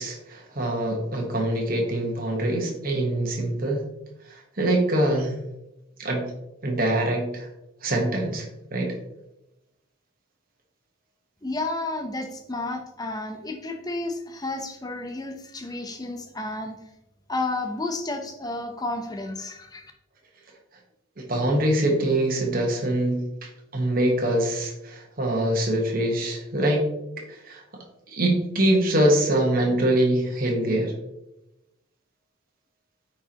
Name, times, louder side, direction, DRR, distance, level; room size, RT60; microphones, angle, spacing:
voice 1, 0.0-3.8 4.3-5.4 6.0-6.2 6.6-7.5 7.8-8.5 8.7-8.9 21.2-26.9 27.3-27.6 28.1-30.9, right 1 dB, 45° right, 1 dB, 1.3 m, -24 dB
voice 2, 11.4-16.8 17.3-19.9, left 2 dB, 20° left, 4 dB, 0.7 m, -31 dB
9.5 x 4.6 x 2.9 m, 0.92 s
head